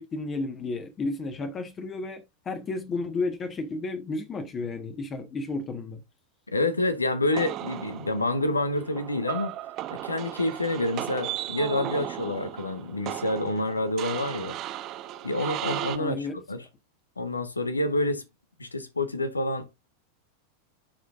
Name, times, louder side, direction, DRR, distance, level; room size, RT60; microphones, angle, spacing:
voice 1, 0.0-6.0 15.9-16.4, left 3 dB, 25° left, 1.3 m, -32 dB
voice 2, 6.5-9.6 9.9-14.6 15.2-16.7 17.2-18.2 18.6-19.8, left 2 dB, 80° left, 1.1 m, -28 dB
sound 1, 7.3-16.0, right 13 dB, 35° right, 0.9 m, -36 dB
11.5 x 5.0 x 2.5 m
figure-of-eight pair, 90°, 0 cm